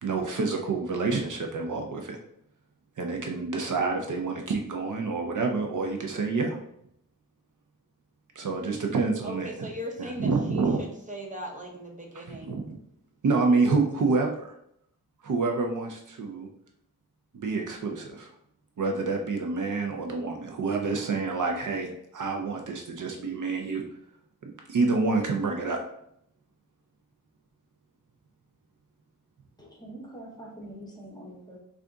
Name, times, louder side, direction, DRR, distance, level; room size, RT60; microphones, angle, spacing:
voice 1, 0.0-2.2 3.0-6.6 8.4-9.7 10.0-10.8 12.2-12.8 13.2-14.5 15.2-16.5 17.3-18.3 18.8-23.8 24.4-25.8, right 4 dB, 55° right, 2 dB, 0.6 m, -28 dB
voice 2, 9.2-12.6, equal, 20° right, 0 dB, 0.7 m, -39 dB
voice 3, 29.6-31.6, right 1 dB, 10° left, -2 dB, 0.8 m, -44 dB
3.4 x 2.5 x 3.8 m, 0.73 s
wide cardioid pair, 120°, 36 cm